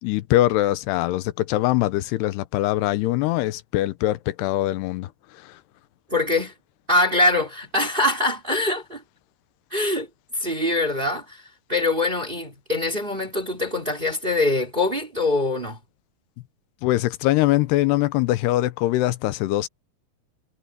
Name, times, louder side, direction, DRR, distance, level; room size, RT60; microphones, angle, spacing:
voice 1, 0.0-5.6 16.8-19.7, left 16 dB, 85° left, 2.8 m, -22 dB
voice 2, 6.1-6.5 6.9-9.0 9.7-10.1 10.3-15.8, left 2 dB, 15° right, 2.4 m, -23 dB
omnidirectional pair, 4.7 m